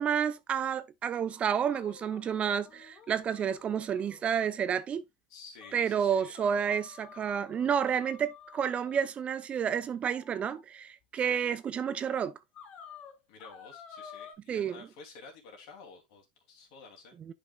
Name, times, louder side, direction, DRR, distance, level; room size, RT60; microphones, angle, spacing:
voice 1, 0.0-5.0 5.7-12.3 14.5-14.8 17.3-17.4, right 8 dB, 30° right, 0.7 m, -30 dB
sound 1, 1.6-4.6 5.0-5.1 5.6-5.8 6.3-9.1 10.1-10.6 11.4-11.5 12.1-12.2 12.5-14.4, left 7 dB, 40° left, 1.6 m, -51 dB
voice 2, 5.3-6.4 11.2-11.4 13.3-17.2, left 4 dB, 65° left, 3.1 m, -51 dB
10.0 x 5.3 x 2.4 m
hypercardioid pair, 105°, 4 cm